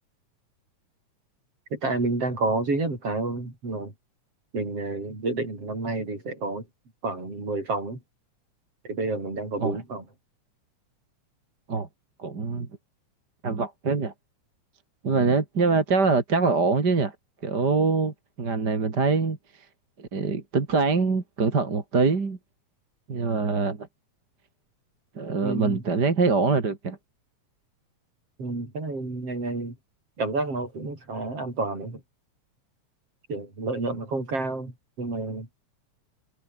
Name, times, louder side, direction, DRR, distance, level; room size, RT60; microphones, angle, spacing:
voice 1, 1.7-3.9 4.5-6.7 7.0-8.0 8.9-10.1 25.4-25.8 28.4-29.8 30.2-32.0 33.3-35.6, right 3 dB, 50° right, 8.6 m, -29 dB
voice 2, 12.2-12.7 13.4-14.1 15.0-17.1 17.4-19.4 20.0-22.4 23.1-23.9 25.1-27.0, right 4 dB, 35° right, 3.2 m, -24 dB
omnidirectional pair, 3.3 m